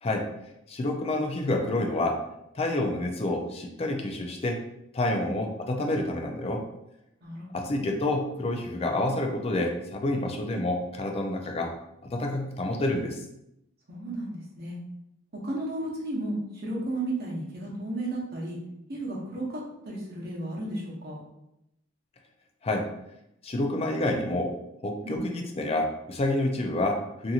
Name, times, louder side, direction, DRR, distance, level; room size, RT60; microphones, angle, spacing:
voice 1, 0.7-2.2 2.6-4.6 4.9-6.6 7.5-11.7 12.0-13.2 22.6-22.9 23.4-24.5 24.8-27.3, left 1 dB, 30° left, 3 dB, 0.4 m, -28 dB
voice 2, 7.2-7.8 13.9-14.8 15.4-18.6 18.9-21.2 25.0-25.2, right 1 dB, 55° right, -3 dB, 0.8 m, -34 dB
2.8 x 2.6 x 2.4 m, 0.83 s
head